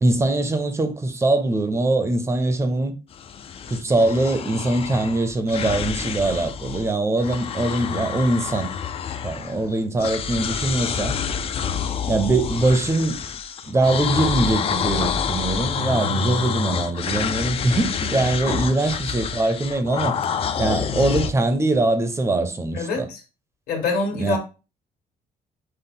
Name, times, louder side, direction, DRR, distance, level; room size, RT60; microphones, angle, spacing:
voice 1, 0.0-2.9 3.7-8.7 9.2-11.2 12.1-13.2 13.7-20.2 20.6-23.1 24.2-24.4, right 2 dB, 20° right, 0.6 m, -22 dB
sound 1, 3.1-6.9 7.2-9.7 10.0-21.3, left 7 dB, 40° left, 0.4 m, -27 dB
voice 2, 22.7-23.2 23.7-24.4, left 4 dB, 90° left, 1.7 m, -25 dB
5.4 x 2.1 x 3.8 m
cardioid pair, 140°, 15 cm